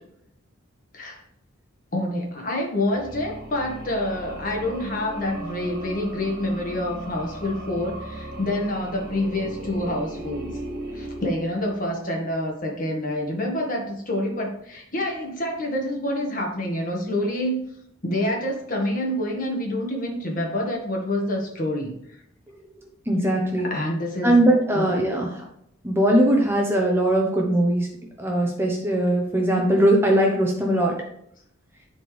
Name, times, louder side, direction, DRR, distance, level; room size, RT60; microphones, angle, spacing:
voice 1, 1.9-10.5 10.9-17.6 18.0-21.9 23.6-24.4 24.7-24.8, left 1 dB, 40° left, 0 dB, 1.8 m, -27 dB
sound 1, 2.9-12.0, right 1 dB, 50° right, 1.5 m, -37 dB
voice 2, 23.1-23.7 24.2-25.4 25.8-27.9 28.2-31.0, right 1 dB, 10° right, 0 dB, 1.0 m, -20 dB
11.0 x 4.4 x 3.4 m, 0.74 s
head